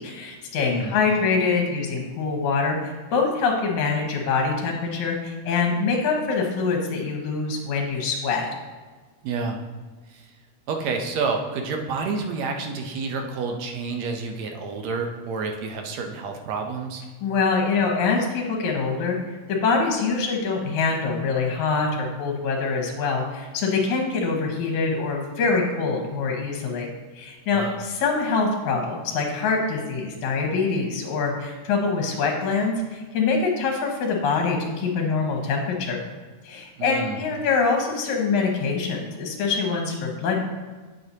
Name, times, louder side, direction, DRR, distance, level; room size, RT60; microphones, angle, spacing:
voice 1, 0.0-8.5 17.2-19.2 19.5-26.9 27.2-36.0 36.4-40.5, left 4 dB, 75° left, 1 dB, 2.6 m, -24 dB
voice 2, 9.2-9.6 10.1-10.3 10.7-17.0 27.5-27.8 36.8-37.2, right 4 dB, 75° right, 4 dB, 1.9 m, -29 dB
8.1 x 7.7 x 2.8 m, 1.4 s
omnidirectional pair, 3.4 m